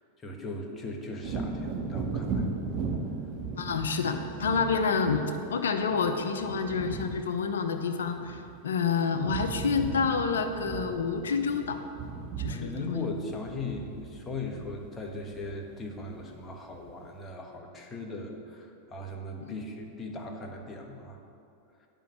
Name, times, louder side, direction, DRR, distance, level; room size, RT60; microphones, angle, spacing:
voice 1, 0.2-2.5 12.5-21.2 21.8-21.9, left 2 dB, 20° left, 2 dB, 1.4 m, -39 dB
Wind / Thunder, 1.2-8.8 9.0-16.3 16.7-16.9, right 4 dB, 40° right, 1.8 m, -37 dB
voice 2, 3.5-11.8 12.4-13.1 19.4-19.6, left 5 dB, 80° left, 6 dB, 0.8 m, -28 dB
9.1 x 5.4 x 7.9 m, 2.6 s
hypercardioid pair, 105°, 0 cm